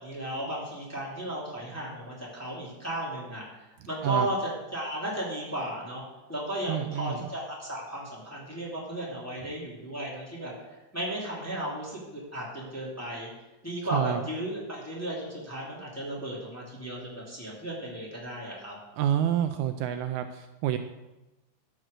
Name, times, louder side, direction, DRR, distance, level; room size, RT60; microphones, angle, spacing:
voice 1, 0.0-3.4 3.9-4.4 4.7-6.0 6.3-10.5 10.9-13.3 13.6-18.8, right 1 dB, 5° left, -5 dB, 2.3 m, -35 dB
voice 2, 6.7-7.3 13.9-14.2 19.0-20.8, right 10 dB, 80° right, 8 dB, 1.8 m, -28 dB
12.0 x 6.1 x 6.5 m, 1.1 s
omnidirectional pair, 3.5 m